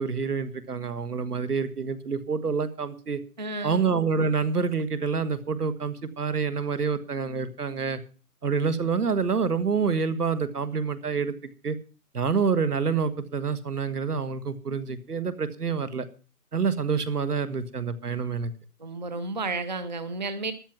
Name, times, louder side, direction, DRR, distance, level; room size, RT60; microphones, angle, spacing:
voice 1, 0.0-3.2 3.6-8.0 8.4-11.8 12.1-16.1 16.5-18.5, right 5 dB, 75° right, 12 dB, 1.7 m, -27 dB
voice 2, 3.4-3.8 18.8-20.5, right 3 dB, 30° right, 11 dB, 0.7 m, -32 dB
13.5 x 9.6 x 6.0 m, 0.38 s
figure-of-eight pair, 160°, 46 cm